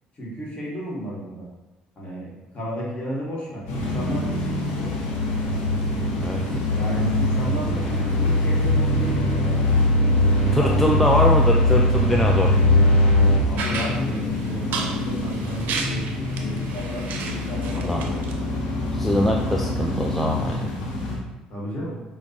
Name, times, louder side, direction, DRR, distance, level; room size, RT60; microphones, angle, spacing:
voice 1, 0.1-1.5 1.9-4.9 6.7-9.7 10.5-11.1 13.5-18.3 19.3-20.1 21.5-22.0, right 1 dB, 35° left, -4 dB, 1.4 m, -33 dB
sound 1, 3.7-21.2, left 2 dB, 75° left, 1.0 m, -28 dB
sound 2, 3.7-13.4, left 1 dB, 60° left, 1.4 m, -21 dB
voice 2, 10.5-12.5 17.8-18.1 18.9-20.7, left 1 dB, 5° left, 0 dB, 0.3 m, -23 dB
sound 3, 13.6-18.3, right 4 dB, 65° right, 0.5 m, -33 dB
5.1 x 2.3 x 2.8 m, 1.1 s
hypercardioid pair, 60°, 3 cm